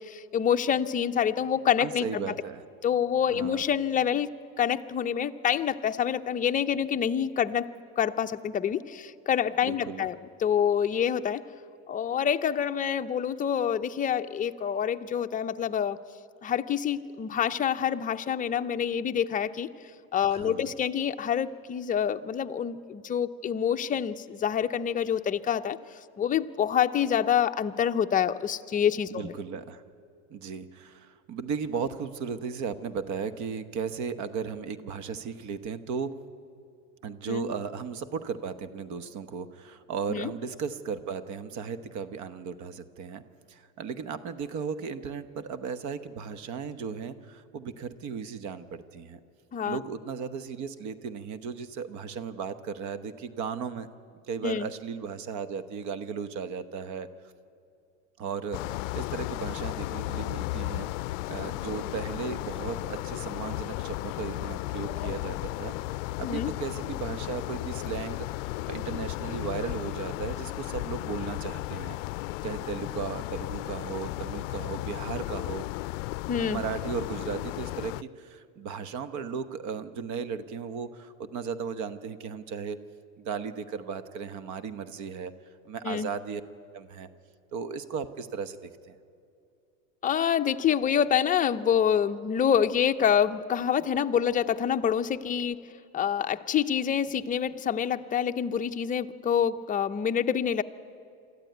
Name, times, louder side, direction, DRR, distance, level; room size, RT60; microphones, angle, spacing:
voice 1, 0.0-2.3 2.8-4.3 4.6-7.7 8.0-11.4 11.9-16.0 16.4-19.7 20.1-25.8 26.2-29.3 37.3-37.5 40.1-40.3 49.5-49.8 54.4-54.7 66.2-66.5 76.3-76.6 85.8-86.1 90.0-95.7 95.9-100.6, left 8 dB, 20° left, 7 dB, 0.6 m, -27 dB
voice 2, 1.8-2.6 3.3-3.6 9.7-10.1 20.3-20.7 29.1-29.8 30.3-36.2 37.0-43.2 43.5-49.2 49.6-53.9 54.3-57.1 58.2-60.9 61.3-65.7 66.2-72.0 72.4-75.7 76.5-82.8 83.2-85.3 85.6-86.4 86.7-87.1 87.5-88.9, right 6 dB, 50° right, 13 dB, 1.1 m, -36 dB
sound 1, 58.5-78.0, left 20 dB, 75° left, 0.5 m, -34 dB
24.5 x 14.0 x 9.2 m, 2.5 s
supercardioid pair, 120°, 38 cm